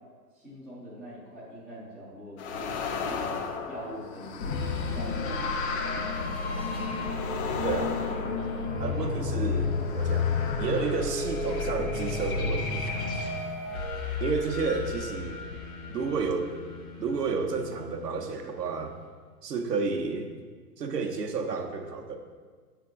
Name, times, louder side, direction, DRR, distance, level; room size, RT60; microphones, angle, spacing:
voice 1, 0.3-4.4 4.9-6.1, equal, ahead, -16 dB, 0.3 m, -43 dB
sound 1, 2.4-9.1 9.8-11.7, left 5 dB, 45° left, 0.6 m, -37 dB
sound 2, 4.4-17.1, left 4 dB, 60° left, 1.4 m, -31 dB
voice 2, 7.6-8.0 8.8-13.1 14.2-15.4 15.9-16.5 17.0-18.9 19.4-20.3 20.8-22.2, right 4 dB, 80° right, 4 dB, 0.8 m, -31 dB
sound 3, 14.6-19.0, left 4 dB, 45° right, 0.8 m, -47 dB
8.1 x 3.7 x 3.6 m, 1.6 s
figure-of-eight pair, 110°, 47 cm